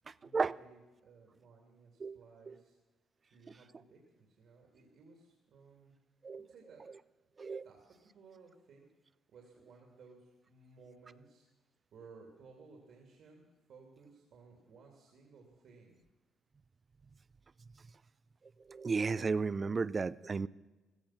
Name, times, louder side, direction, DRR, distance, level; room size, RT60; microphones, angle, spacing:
voice 1, 0.0-2.8 3.2-5.9 6.3-6.8 7.6-7.8 8.1-8.9 9.3-16.0, right 4 dB, 70° right, 1 dB, 2.8 m, -59 dB
voice 2, 18.7-20.5, right 4 dB, 35° right, 19 dB, 0.5 m, -33 dB
16.0 x 14.0 x 5.9 m, 1.2 s
cardioid pair, 90°, 0 cm